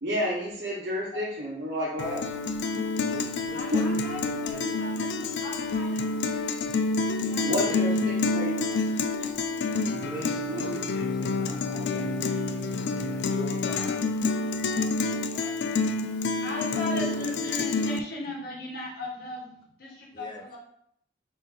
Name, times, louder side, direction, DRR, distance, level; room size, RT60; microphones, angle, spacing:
voice 1, 0.0-2.2 3.7-3.8 7.4-8.6 8.8-9.0 10.5-10.8 14.5-14.6 15.6-15.7, equal, 65° right, -5 dB, 1.0 m, -30 dB
Guitar, 2.0-18.0, left 3 dB, 75° left, 0.4 m, -28 dB
voice 2, 2.9-4.8 7.6-7.9 10.0-15.8 16.7-17.1 17.4-17.7 20.1-20.4, equal, 25° left, 1 dB, 0.7 m, -44 dB
voice 3, 3.5-8.9 16.2-20.6, left 2 dB, 55° left, -3 dB, 1.4 m, -38 dB
3.9 x 3.5 x 3.8 m, 0.69 s
head